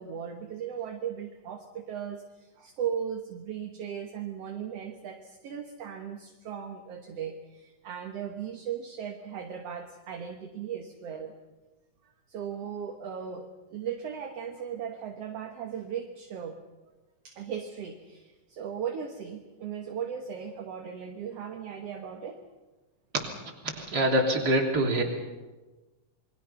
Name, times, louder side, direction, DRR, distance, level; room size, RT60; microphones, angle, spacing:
voice 1, 0.0-11.3 12.3-16.6 17.2-22.4, right 8 dB, 60° right, 4 dB, 2.2 m, -37 dB
voice 2, 23.6-25.0, right 1 dB, 30° right, 1 dB, 3.5 m, -25 dB
28.0 x 22.5 x 5.7 m, 1.2 s
omnidirectional pair, 3.5 m